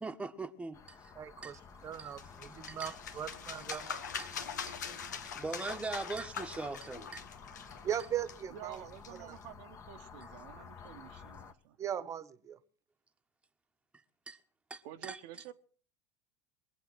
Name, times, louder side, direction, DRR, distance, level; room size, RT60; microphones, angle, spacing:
voice 1, 0.0-1.1 1.4-1.6 2.0-2.9 3.7-4.7 5.3-7.2 14.3-14.4 14.7-15.2, right 3 dB, 10° right, 1.3 m, -42 dB
sound 1, 0.7-11.5, left 6 dB, 30° left, 1.6 m, -52 dB
voice 2, 1.2-3.8 7.8-8.8 11.8-12.6, right 9 dB, 35° right, 1.3 m, -39 dB
sound 2, 1.9-9.4, left 6 dB, 80° left, 1.5 m, -43 dB
voice 3, 8.5-11.8 14.8-15.5, right 12 dB, 60° right, 1.1 m, -50 dB
22.5 x 8.4 x 6.3 m
hypercardioid pair, 80°, 9 cm